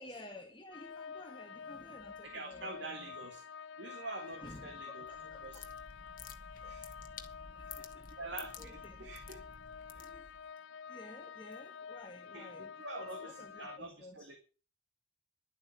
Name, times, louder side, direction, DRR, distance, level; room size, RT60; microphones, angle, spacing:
voice 1, 0.0-3.1 4.4-5.8 6.6-6.9 7.5-8.1 8.6-9.1 10.0-10.5 10.9-14.3, left 1 dB, 25° left, 1.5 m, -53 dB
sound 1, 0.7-13.8, left 6 dB, 80° left, 0.5 m, -49 dB
voice 2, 2.2-3.4 3.8-5.1 5.4-5.6 6.6-6.9 7.7-7.9 8.2-9.4 9.9-10.2 12.3-14.4, right 2 dB, 65° right, 1.8 m, -46 dB
sound 2, 5.1-10.5, left 6 dB, 45° left, 1.4 m, -51 dB
11.5 x 8.3 x 6.7 m
head